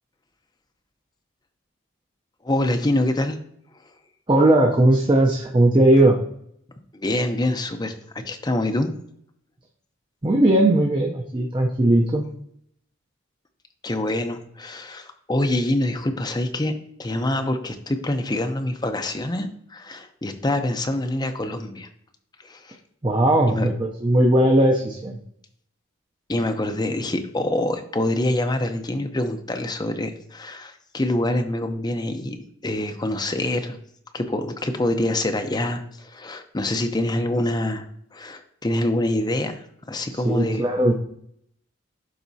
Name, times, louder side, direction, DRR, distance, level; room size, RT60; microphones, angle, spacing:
voice 1, 2.4-3.4 6.9-8.9 13.8-21.9 22.4-22.8 23.5-23.7 26.3-33.8 34.1-40.7, left 1 dB, 20° left, 6 dB, 0.6 m, -25 dB
voice 2, 4.3-6.2 10.2-12.2 23.0-25.2 40.2-40.9, right 1 dB, 20° right, 1 dB, 0.6 m, -18 dB
11.5 x 4.1 x 2.7 m, 0.69 s
head